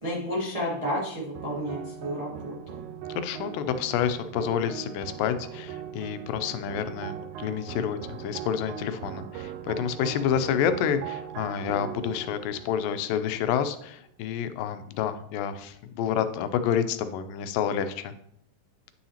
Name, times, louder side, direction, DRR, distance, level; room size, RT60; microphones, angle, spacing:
voice 1, 0.0-2.9, equal, 60° right, -5 dB, 0.3 m, -31 dB
sound 1, 1.4-13.8, right 10 dB, 90° right, 1.7 m, -40 dB
voice 2, 3.2-18.1, left 8 dB, 85° left, 10 dB, 2.3 m, -29 dB
9.6 x 5.6 x 2.9 m, 0.70 s
omnidirectional pair, 3.9 m